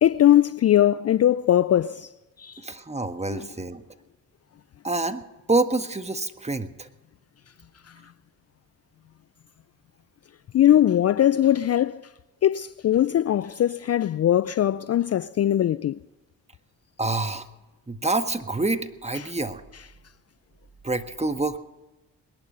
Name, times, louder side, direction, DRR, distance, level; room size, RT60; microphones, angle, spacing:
voice 1, 0.0-2.1 2.4-2.6 10.5-12.0 12.4-16.0, left 11 dB, 40° left, 0.4 m, -20 dB
voice 2, 2.6-3.8 4.8-6.9 17.0-17.4 17.9-19.6 20.8-21.6, right 2 dB, 15° right, 1.5 m, -27 dB
20.5 x 11.5 x 5.5 m
hypercardioid pair, 45°, 39 cm